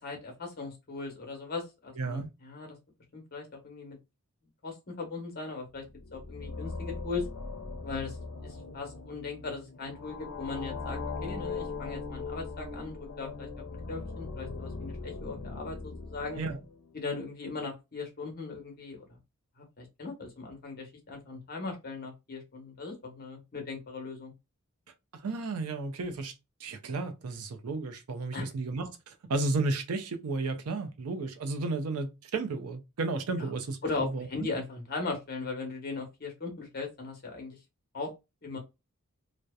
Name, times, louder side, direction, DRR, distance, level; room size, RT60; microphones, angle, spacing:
voice 1, 0.0-2.8 3.1-4.0 4.6-5.8 6.1-7.3 7.8-8.2 8.4-16.4 16.9-19.1 19.6-24.3 28.3-28.5 33.4-33.5 33.8-37.6 37.9-38.1 38.4-38.6, left 3 dB, 45° left, 0.9 m, -38 dB
voice 2, 2.0-2.3 16.4-16.6 25.1-26.3 26.6-34.3, right 3 dB, 85° right, 0.5 m, -33 dB
sound 1, 5.8-17.0, left 3 dB, 85° left, 0.5 m, -40 dB
2.7 x 2.0 x 2.2 m
head